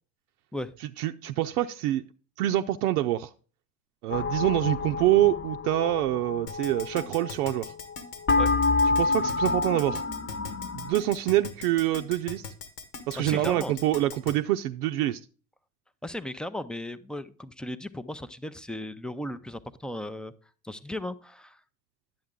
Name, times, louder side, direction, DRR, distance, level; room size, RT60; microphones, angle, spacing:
voice 1, 1.0-2.0 2.4-3.3 4.0-7.7 9.0-10.0 10.7-12.4 13.1-15.2, right 14 dB, 75° right, 6 dB, 0.6 m, -26 dB
sound 1, 4.1-7.9 8.2-10.9, left 3 dB, 25° left, 1.0 m, -28 dB
Keyboard (musical), 6.5-14.3, left 5 dB, 80° left, 1.6 m, -39 dB
voice 2, 13.2-13.7 16.0-20.3 20.6-21.6, left 1 dB, ahead, 13 dB, 0.4 m, -36 dB
10.5 x 7.8 x 3.7 m, 0.38 s
hypercardioid pair, 70°, 46 cm